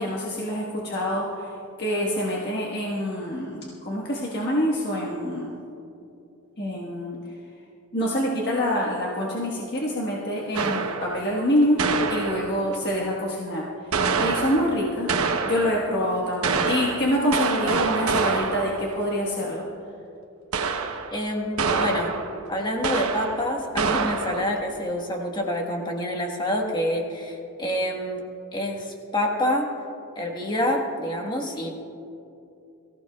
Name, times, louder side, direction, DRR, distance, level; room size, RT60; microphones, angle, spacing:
voice 1, 0.0-1.5 1.8-5.5 6.6-7.2 7.9-11.8 12.1-13.7 14.2-15.1 15.4-19.6, equal, 45° left, -4 dB, 1.4 m, -26 dB
sound 1, 10.5-11.2 11.8-12.8 13.9-15.9 16.4-18.9 20.5-21.2 21.6-22.4 22.8-23.5 23.8-24.6, right 4 dB, 70° right, 0.9 m, -26 dB
voice 2, 21.1-22.1 22.5-28.2 28.5-29.7 30.1-31.8, left 1 dB, 20° left, 1 dB, 1.4 m, -27 dB
23.0 x 15.0 x 2.4 m, 2.7 s
head